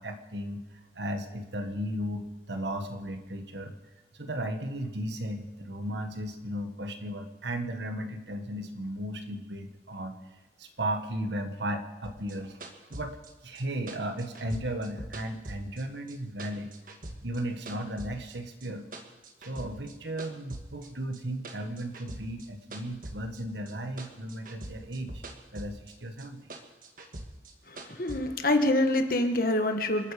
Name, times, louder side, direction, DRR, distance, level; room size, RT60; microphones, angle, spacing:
voice 1, 0.0-3.7 4.1-10.2 10.6-13.2 13.4-16.7 17.2-18.9 19.4-25.2 25.5-26.5, right 1 dB, 75° right, 6 dB, 1.7 m, -35 dB
sound 1, 12.0-16.1 16.4-18.4 18.6-19.9 20.2-23.7 24.0-25.9 26.2-28.2, right 1 dB, 50° right, 1.6 m, -43 dB
voice 2, 27.7-30.1, left 1 dB, 50° left, 6 dB, 1.5 m, -26 dB
28.0 x 9.9 x 5.2 m, 1.1 s
head